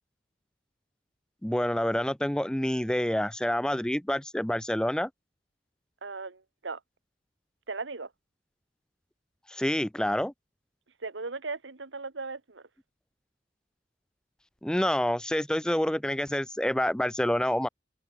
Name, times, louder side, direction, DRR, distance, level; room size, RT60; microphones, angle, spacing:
voice 1, 1.4-5.1 9.5-10.3 14.6-17.7, left 1 dB, 5° left, 0.4 m, -27 dB
voice 2, 6.0-6.8 7.7-8.1 11.0-12.6, right 3 dB, 90° right, 1.5 m, -37 dB
open air
head